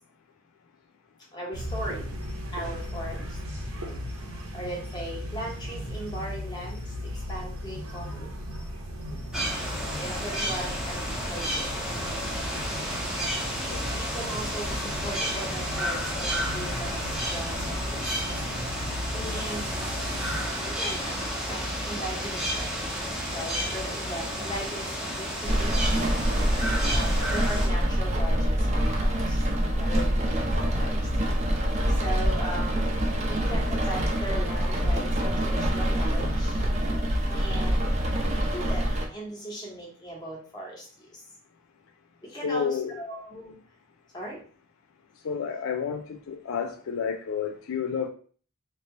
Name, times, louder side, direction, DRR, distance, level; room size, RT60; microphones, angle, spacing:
voice 1, 1.3-2.1 2.5-3.4 4.5-8.3 9.9-13.0 13.9-18.1 19.1-20.0 20.6-22.7 23.3-25.9 26.8-29.4 29.7-31.1 31.7-32.9 33.3-36.6 37.3-37.8 38.3-41.2 42.2-43.6 44.1-44.4, right 1 dB, 20° left, -3 dB, 1.2 m, -38 dB
sound 1, 1.5-20.5, equal, 80° right, 1.1 m, -37 dB
sound 2, 9.3-27.7, equal, 5° right, 0.8 m, -31 dB
Rain, 25.4-39.1, equal, 30° right, 0.6 m, -25 dB
voice 2, 42.4-42.9 45.2-46.0 46.3-48.1, left 6 dB, 70° left, 5 dB, 0.4 m, -30 dB
3.3 x 2.9 x 4.0 m, 0.43 s
head